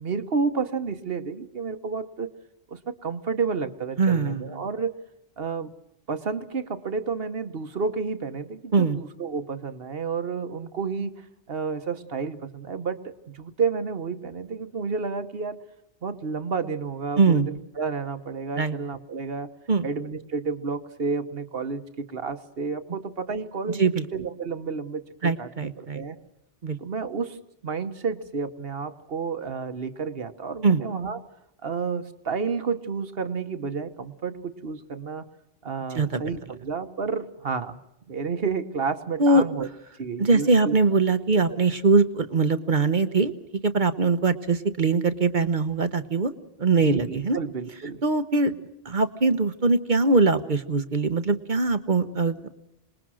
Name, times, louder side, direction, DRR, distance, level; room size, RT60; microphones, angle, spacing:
voice 1, 0.0-2.3 2.7-4.9 5.4-5.7 6.1-15.6 16.0-19.5 19.8-26.2 26.8-27.4 27.6-31.2 31.6-35.2 35.6-37.8 38.1-39.7 40.0-40.8 41.3-41.4 46.8-48.0, right 5 dB, 70° right, 10 dB, 1.3 m, -31 dB
voice 2, 4.0-4.5 8.7-9.0 17.2-17.5 18.6-18.8 19.7-19.9 23.8-24.0 25.2-26.0 26.6-26.8 30.6-30.8 35.9-36.2 39.2-39.4 40.2-43.3 43.6-46.3 46.6-47.4 48.0-48.5 48.8-52.5, right 3 dB, 50° right, 11 dB, 1.1 m, -22 dB
26.0 x 20.5 x 6.3 m, 0.85 s
omnidirectional pair, 1.0 m